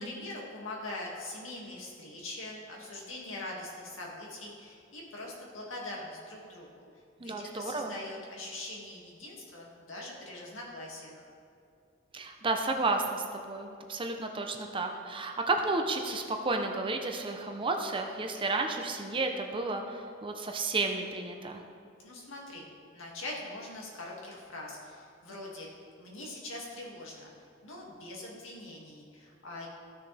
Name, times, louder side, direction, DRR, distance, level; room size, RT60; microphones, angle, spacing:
voice 1, 0.0-6.8 7.2-11.2 22.0-22.7 22.9-25.7 26.0-27.3 27.6-29.7, left 2 dB, 80° left, -3 dB, 2.2 m, -42 dB
voice 2, 7.2-8.0 12.1-21.6, right 3 dB, 25° right, 4 dB, 0.7 m, -32 dB
14.0 x 6.5 x 3.4 m, 2.5 s
head